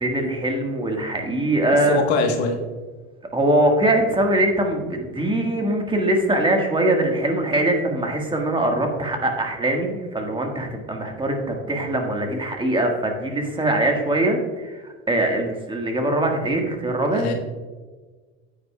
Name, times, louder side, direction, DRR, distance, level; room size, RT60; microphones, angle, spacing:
voice 1, 0.0-2.0 3.3-17.3, right 1 dB, 15° right, 2 dB, 1.6 m, -22 dB
voice 2, 1.7-2.6 17.1-17.3, left 4 dB, 85° left, 3 dB, 1.3 m, -23 dB
9.5 x 8.7 x 2.3 m, 1.4 s
supercardioid pair, 90°, 31 cm